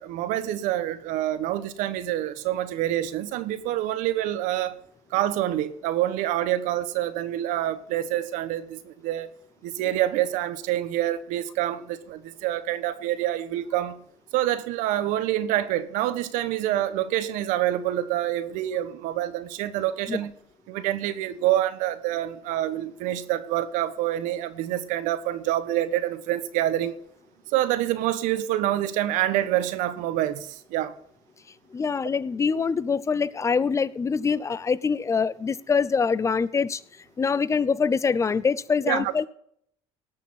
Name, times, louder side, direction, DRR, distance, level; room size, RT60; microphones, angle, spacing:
voice 1, 0.0-4.8 5.1-9.3 9.6-14.0 14.3-20.3 20.7-27.0 27.5-30.9 38.9-39.1, right 13 dB, 75° right, 1.1 m, -27 dB
voice 2, 31.7-36.8 37.2-39.3, left 5 dB, 25° left, 0.6 m, -24 dB
18.0 x 6.8 x 5.7 m
supercardioid pair, 100°, 13 cm